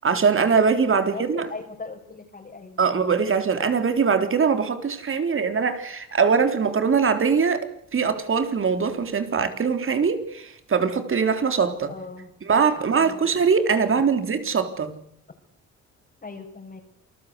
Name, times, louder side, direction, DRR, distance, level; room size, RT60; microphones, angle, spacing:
voice 1, 0.0-1.5 2.8-7.7 7.9-11.9 12.5-14.9, right 5 dB, 45° right, 8 dB, 3.7 m, -22 dB
voice 2, 1.0-2.8 11.9-12.3 13.0-13.4 16.2-16.8, left 4 dB, 30° left, -3 dB, 6.0 m, -39 dB
28.0 x 20.0 x 8.2 m, 0.69 s
cardioid pair, 90°, 30 cm